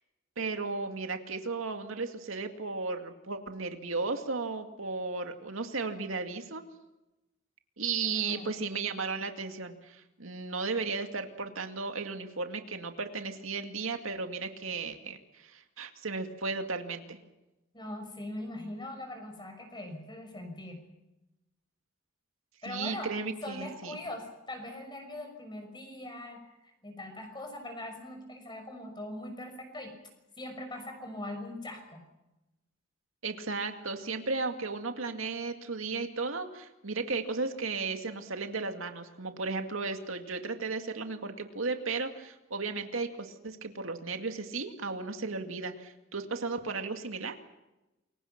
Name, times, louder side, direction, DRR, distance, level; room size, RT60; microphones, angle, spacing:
voice 1, 0.4-6.6 7.8-17.2 22.6-24.0 33.2-47.4, right 4 dB, 80° right, 6 dB, 2.2 m, -35 dB
voice 2, 8.0-8.6 17.7-20.8 22.6-23.1 23.4-29.9 30.4-32.0, left 1 dB, 20° left, 5 dB, 6.1 m, -41 dB
28.0 x 23.5 x 6.0 m, 0.99 s
head